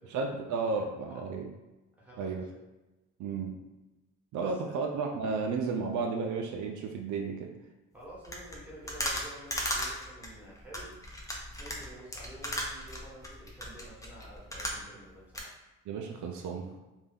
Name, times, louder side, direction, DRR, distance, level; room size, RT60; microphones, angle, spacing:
voice 1, 0.1-1.5 2.2-2.5 3.2-3.6 4.3-7.5 15.9-16.7, right 4 dB, 75° right, 2 dB, 0.4 m, -33 dB
voice 2, 2.0-2.3 4.4-4.9 7.9-11.0 11.6-15.5, right 1 dB, 5° right, -7 dB, 1.2 m, -50 dB
sound 1, 8.2-15.1 15.3-15.4, equal, 10° left, 0.6 m, -36 dB
2.6 x 2.2 x 3.4 m, 1.1 s
cardioid pair, 90°, 30 cm